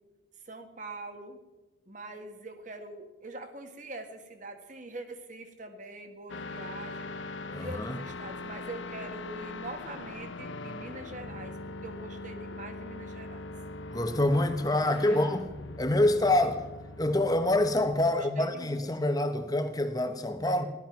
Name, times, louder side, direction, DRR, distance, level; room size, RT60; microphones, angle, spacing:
voice 1, 0.5-1.4 1.9-7.2 7.6-13.5 14.9-15.3 16.4-16.5 18.0-18.9, right 2 dB, 40° right, 1.7 m, -44 dB
sound 1, 6.3-18.1, left 2 dB, 85° left, 0.9 m, -41 dB
voice 2, 7.5-8.0 13.9-15.5 15.8-16.6 17.0-20.7, left 1 dB, 20° left, 1.0 m, -26 dB
17.0 x 12.5 x 5.9 m
head